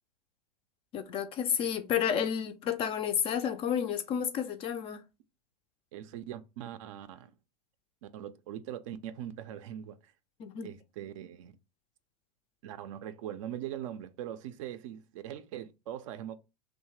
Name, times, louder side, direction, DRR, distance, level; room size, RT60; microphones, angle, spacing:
voice 1, 0.9-5.0 10.4-10.7, left 8 dB, 25° left, 0.4 m, -31 dB
voice 2, 5.9-7.3 8.0-10.0 10.6-11.5 12.6-16.4, right 11 dB, 50° right, 0.4 m, -41 dB
2.7 x 2.1 x 3.1 m
figure-of-eight pair, 95°, 21 cm